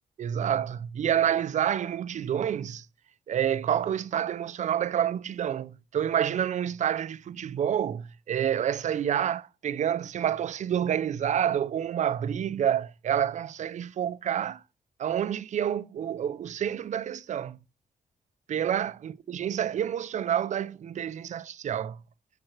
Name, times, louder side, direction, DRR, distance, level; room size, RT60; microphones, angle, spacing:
voice 1, 0.2-2.9 3.3-14.6 15.0-17.6 18.5-22.0, right 9 dB, 55° right, 0.4 m, -28 dB
7.4 x 4.8 x 4.4 m
cardioid pair, 95°, 15 cm